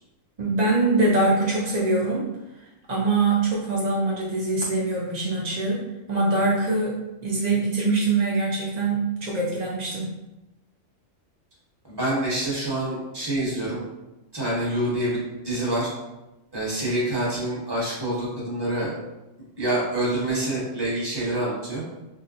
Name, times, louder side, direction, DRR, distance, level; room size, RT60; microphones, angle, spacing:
voice 1, 0.4-2.3 2.9-10.1, right 3 dB, 70° right, -4 dB, 0.4 m, -23 dB
voice 2, 11.9-13.8 14.3-15.2 15.4-15.9 16.5-18.9 19.6-21.8, right 1 dB, 20° right, -7 dB, 1.1 m, -26 dB
2.9 x 2.1 x 3.8 m, 0.97 s
omnidirectional pair, 1.4 m